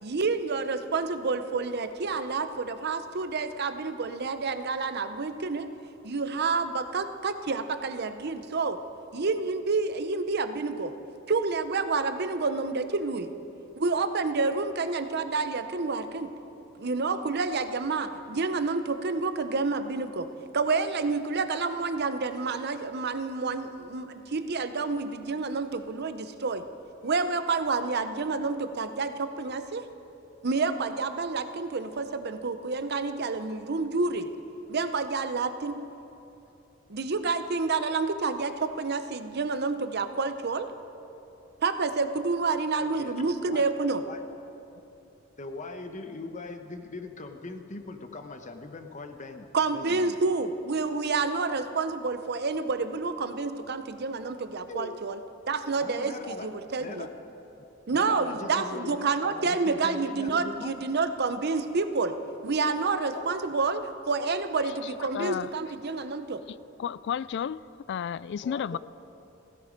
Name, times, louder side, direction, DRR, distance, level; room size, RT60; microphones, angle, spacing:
voice 1, 0.0-5.7 6.0-8.8 9.1-10.9 11.3-13.3 13.8-16.3 16.8-20.3 20.5-26.6 27.0-29.8 30.4-34.3 34.7-35.8 36.9-40.7 41.6-44.0 49.5-55.2 55.5-57.1 57.9-62.1 62.4-66.4, right 4 dB, 55° right, 0.7 m, -29 dB
voice 2, 42.8-43.7 44.0-44.2 45.4-49.5 49.7-50.2 54.7-55.0 55.8-56.5 56.8-57.1 57.9-60.7 63.1-63.3 68.4-68.8, left 3 dB, 40° left, 1.0 m, -40 dB
voice 3, 65.1-65.5 66.8-67.6 67.9-68.8, left 8 dB, 60° left, 0.3 m, -31 dB
16.0 x 15.5 x 5.2 m
head